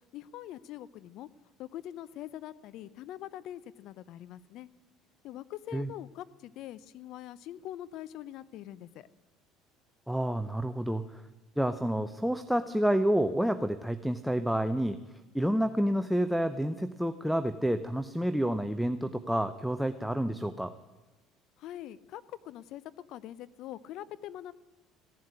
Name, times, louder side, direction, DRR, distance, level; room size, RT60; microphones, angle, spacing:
voice 1, 0.1-1.3 1.6-4.7 5.2-9.1 21.6-22.8 23.1-24.5, left 12 dB, 60° left, 17 dB, 0.7 m, -43 dB
voice 2, 10.1-11.2 11.6-20.7, equal, ahead, 9 dB, 0.7 m, -29 dB
16.0 x 7.5 x 10.0 m, 1.1 s
hypercardioid pair, 75°, 0 cm